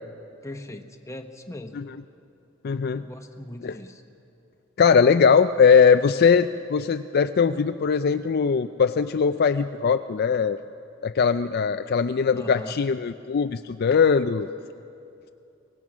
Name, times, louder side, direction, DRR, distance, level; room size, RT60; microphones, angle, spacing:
voice 1, 0.4-1.8 2.9-4.0 12.3-12.8, left 1 dB, 15° left, 5 dB, 1.1 m, -39 dB
voice 2, 2.6-3.0 3.6-3.7 4.8-10.6 11.0-14.5, left 6 dB, 50° left, 10 dB, 0.4 m, -20 dB
23.5 x 18.5 x 6.1 m, 2.6 s
head